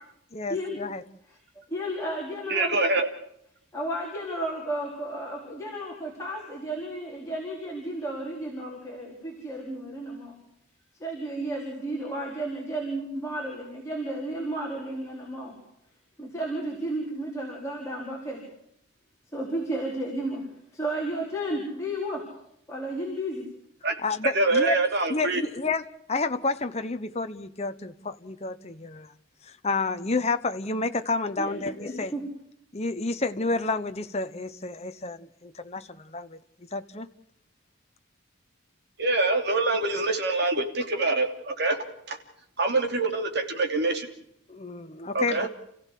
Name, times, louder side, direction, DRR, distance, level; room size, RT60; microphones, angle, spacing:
voice 1, 0.3-1.0 24.0-24.8 25.1-29.1 29.4-32.1 32.7-36.4 36.7-37.1 44.5-45.5, left 3 dB, 30° left, 8 dB, 0.9 m, -30 dB
voice 2, 1.7-2.8 3.7-10.4 11.0-15.6 16.2-18.4 19.3-22.3 22.7-23.5 31.4-32.3, right 1 dB, 15° left, -3 dB, 4.5 m, -33 dB
voice 3, 2.5-3.1 23.8-24.0 24.3-25.4 39.0-41.8 42.1-42.2 42.6-44.1 45.1-45.5, right 2 dB, 50° right, 5 dB, 2.9 m, -25 dB
29.5 x 15.5 x 8.4 m, 0.77 s
head